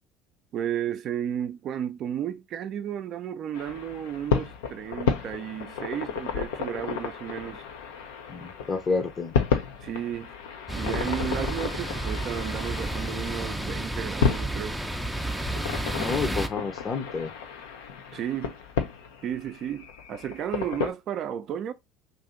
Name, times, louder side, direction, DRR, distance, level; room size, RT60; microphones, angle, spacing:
voice 1, 0.5-7.6 9.8-10.3 10.7-14.8 18.1-18.5 19.2-21.7, right 9 dB, 55° right, 0.5 m, -33 dB
sound 1, 3.5-20.9, left 6 dB, 75° left, 0.5 m, -32 dB
voice 2, 8.3-9.3 16.0-17.3, left 4 dB, 35° left, 0.7 m, -29 dB
sound 2, 10.7-16.5, right 1 dB, 5° right, 0.5 m, -31 dB
2.7 x 2.6 x 3.7 m
hypercardioid pair, 70°, 0 cm